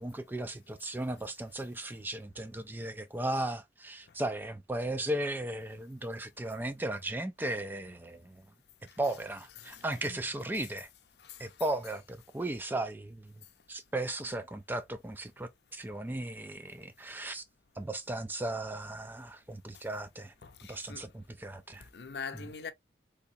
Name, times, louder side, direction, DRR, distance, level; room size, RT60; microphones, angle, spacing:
voice 1, 0.0-8.4 9.0-10.9 11.4-13.3 13.7-17.4 17.8-20.3 20.7-21.9 22.3-22.5, right 1 dB, 10° right, 0.3 m, -36 dB
voice 2, 9.6-10.2 11.2-11.6 19.7-19.8 20.4-21.1 21.8-22.7, left 5 dB, 70° left, 0.6 m, -44 dB
3.4 x 2.9 x 2.6 m
head